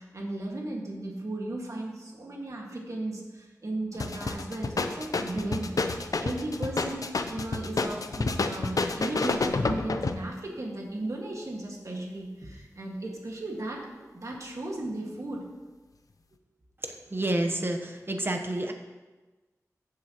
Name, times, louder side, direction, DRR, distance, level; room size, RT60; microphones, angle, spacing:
voice 1, 0.0-15.5, right 1 dB, 60° right, -1 dB, 1.8 m, -36 dB
sound 1, 3.9-10.3, left 3 dB, 70° left, 0.6 m, -29 dB
voice 2, 16.8-18.7, right 1 dB, 40° right, 4 dB, 1.0 m, -29 dB
14.5 x 7.6 x 3.0 m, 1.2 s
wide cardioid pair, 75°, 6 cm